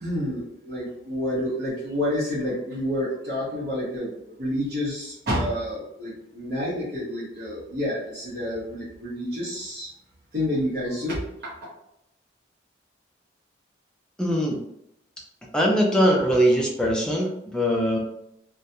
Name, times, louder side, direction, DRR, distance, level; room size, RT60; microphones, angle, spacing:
voice 1, 0.0-4.1 4.4-9.9 10.3-11.2, left 1 dB, 55° right, -9 dB, 0.8 m, -29 dB
voice 2, 14.2-14.6 15.5-18.0, equal, 5° left, -2 dB, 0.4 m, -21 dB
2.4 x 2.2 x 2.7 m, 0.78 s
head